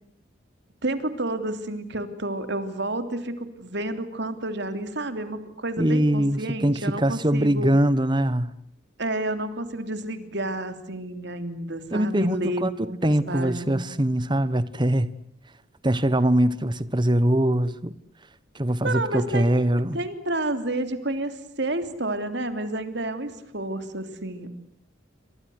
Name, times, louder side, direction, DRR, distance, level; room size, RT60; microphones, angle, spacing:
voice 1, 0.8-7.8 9.0-13.0 13.3-13.8 18.8-19.6 19.9-24.5, right 1 dB, 60° right, 3.2 m, -30 dB
voice 2, 5.8-8.6 11.9-15.1 15.8-17.9 18.5-20.0, right 1 dB, 25° right, 1.2 m, -22 dB
29.5 x 25.0 x 8.0 m
head